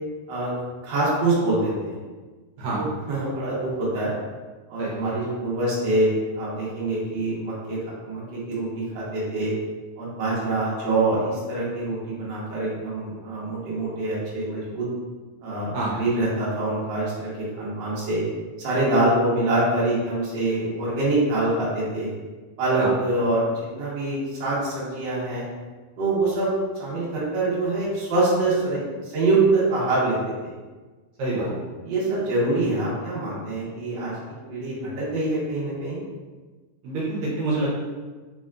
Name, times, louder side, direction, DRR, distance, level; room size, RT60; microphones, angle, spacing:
voice 1, 0.8-2.0 2.7-4.1 4.7-7.8 8.0-9.5 10.0-14.9 15.4-18.2 18.6-22.1 22.6-25.4 26.0-26.5 26.8-30.5 31.3-31.5 31.8-36.0, right 2 dB, 50° right, -7 dB, 1.4 m, -25 dB
voice 2, 4.8-5.1 15.7-15.9 22.8-22.9 31.2-31.5 36.8-37.7, right 2 dB, 75° right, -6 dB, 2.0 m, -27 dB
4.6 x 4.1 x 2.4 m, 1.3 s
omnidirectional pair, 3.5 m